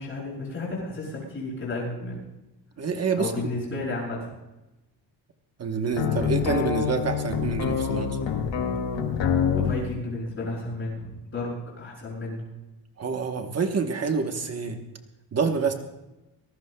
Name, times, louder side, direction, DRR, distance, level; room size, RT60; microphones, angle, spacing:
voice 1, 0.0-2.2 3.2-4.3 9.5-12.5, left 2 dB, 30° left, -6 dB, 7.0 m, -32 dB
voice 2, 2.8-3.3 5.6-8.2 13.0-14.8 15.3-15.7, right 5 dB, 35° right, 5 dB, 1.0 m, -27 dB
sound 1, 5.9-9.8, left 7 dB, 80° left, 2.2 m, -26 dB
25.0 x 18.5 x 2.2 m, 1.0 s
cardioid pair, 175°, 43 cm